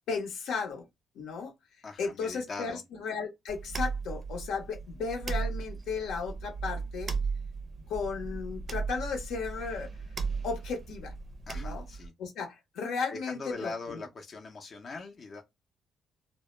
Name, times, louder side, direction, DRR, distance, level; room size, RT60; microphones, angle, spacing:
voice 1, 0.1-0.9 1.1-1.5 2.0-7.1 7.9-9.9 10.4-11.1 11.5-11.8 12.2-14.0, left 5 dB, 85° left, 0.8 m, -35 dB
voice 2, 1.8-2.8 11.5-12.1 13.1-15.4, left 3 dB, 45° left, 0.5 m, -41 dB
sound 1, 3.5-12.1, right 5 dB, 40° right, 0.4 m, -36 dB
2.1 x 2.0 x 3.0 m
cardioid pair, 90°, 0 cm